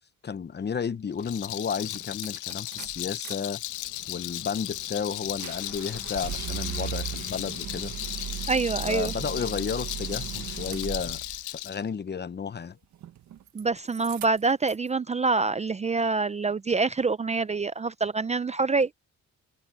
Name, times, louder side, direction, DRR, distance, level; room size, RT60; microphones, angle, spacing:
voice 1, 0.2-3.6 4.1-7.9 8.8-11.2 11.5-12.8, left 6 dB, 35° left, 0.9 m, -32 dB
Rattle, 1.1-11.8, left 16 dB, 85° left, 0.7 m, -36 dB
sound 1, 1.4-1.5 1.8-3.3 3.7-11.4 12.9-13.6 13.9-14.9, right 11 dB, 70° right, 1.5 m, -38 dB
voice 2, 8.5-9.1 13.5-18.9, right 4 dB, 20° right, 0.5 m, -26 dB
open air
cardioid pair, 90°, 30 cm